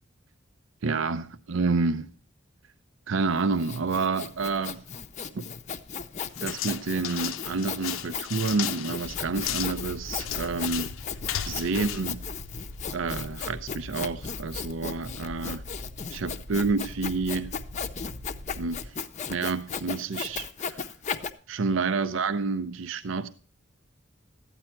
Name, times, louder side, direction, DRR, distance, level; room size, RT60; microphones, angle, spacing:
voice 1, 0.8-2.1 3.1-4.8 5.3-5.5 6.4-10.9 11.5-12.2 12.9-15.6 16.1-17.5 18.6-19.0 19.3-20.9 21.5-23.3, right 4 dB, 70° right, 0.5 m, -29 dB
Sawing, 3.3-21.3, left 6 dB, 35° left, 0.6 m, -36 dB
sound 1, 6.3-12.9, left 10 dB, 85° left, 0.6 m, -35 dB
sound 2, 9.0-18.9, left 1 dB, 85° right, 1.4 m, -42 dB
12.5 x 8.9 x 4.4 m
head